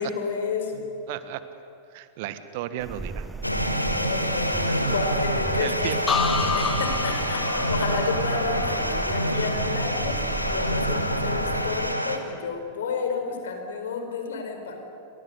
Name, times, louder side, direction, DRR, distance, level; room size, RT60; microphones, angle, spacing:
voice 1, 0.0-0.9 3.8-5.9 6.5-10.2 10.5-14.8, left 5 dB, 60° left, 6 dB, 4.5 m, -31 dB
voice 2, 1.1-1.4 1.9-3.3 4.8-4.9 5.6-6.0, right 13 dB, 50° right, 11 dB, 1.6 m, -34 dB
sound 1, 2.8-11.9, right 3 dB, 10° right, 0.9 m, -36 dB
sound 2, 3.4-12.2, equal, 90° left, 2.0 m, -26 dB
sound 3, 6.1-9.9 10.2-10.7, left 5 dB, 20° left, 2.3 m, -30 dB
29.5 x 25.0 x 8.2 m, 2.6 s
figure-of-eight pair, 90°, 0 cm